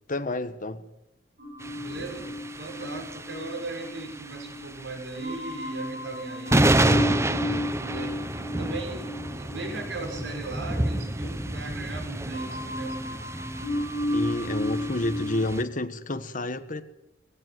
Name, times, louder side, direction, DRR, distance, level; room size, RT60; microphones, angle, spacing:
voice 1, 0.1-0.9 14.1-16.8, left 2 dB, 45° left, 1.5 m, -29 dB
sound 1, 1.4-4.7 5.1-11.9 12.2-15.5, left 1 dB, 55° right, 7.9 m, -33 dB
sound 2, 1.6-15.6, right 1 dB, 15° right, 0.9 m, -30 dB
voice 2, 1.8-13.3, right 2 dB, 85° right, 6.4 m, -38 dB
19.0 x 16.5 x 9.5 m
head